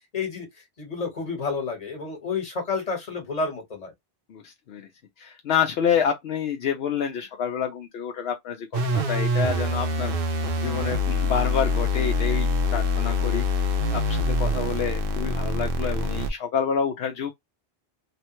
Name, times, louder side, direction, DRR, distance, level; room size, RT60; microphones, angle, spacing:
voice 1, 0.1-0.5 0.8-3.9, left 4 dB, 40° left, 1.3 m, -30 dB
voice 2, 4.3-4.9 5.2-10.1 10.6-13.4 13.9-17.3, left 7 dB, 75° left, 0.8 m, -28 dB
sound 1, 8.7-16.3, left 2 dB, 65° right, 0.8 m, -25 dB
3.1 x 2.1 x 2.9 m
omnidirectional pair, 1.1 m